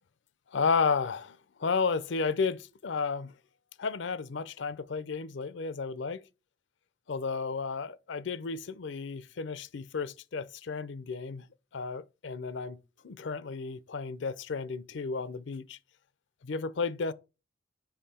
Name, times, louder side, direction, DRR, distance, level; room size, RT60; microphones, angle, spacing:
voice 1, 0.5-3.3 3.8-6.2 7.1-11.5 11.7-12.8 13.0-15.8 16.4-17.1, left 5 dB, 65° left, 0.5 m, -32 dB
5.7 x 5.4 x 4.2 m
head